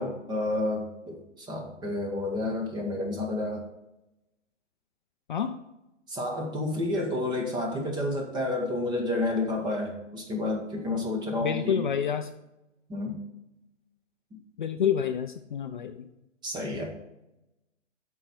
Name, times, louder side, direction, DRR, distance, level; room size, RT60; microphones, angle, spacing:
voice 1, 0.0-3.6 6.1-11.8 12.9-13.2 14.3-14.4 16.4-16.9, left 2 dB, 10° right, 2 dB, 1.3 m, -30 dB
voice 2, 11.4-12.3 14.6-16.1, left 8 dB, 40° left, 8 dB, 0.5 m, -28 dB
13.0 x 4.7 x 4.3 m, 0.91 s
figure-of-eight pair, 125°, 37 cm